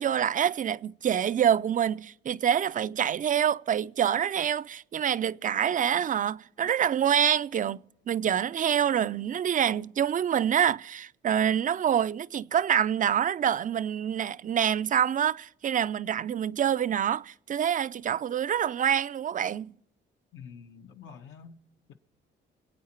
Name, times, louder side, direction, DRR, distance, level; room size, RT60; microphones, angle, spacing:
voice 1, 0.0-7.8 8.1-19.7, right 9 dB, 40° right, 0.4 m, -26 dB
voice 2, 20.3-21.6 21.9-22.0, left 6 dB, 75° left, 1.3 m, -47 dB
25.0 x 8.7 x 4.5 m
cardioid pair, 90°, 20 cm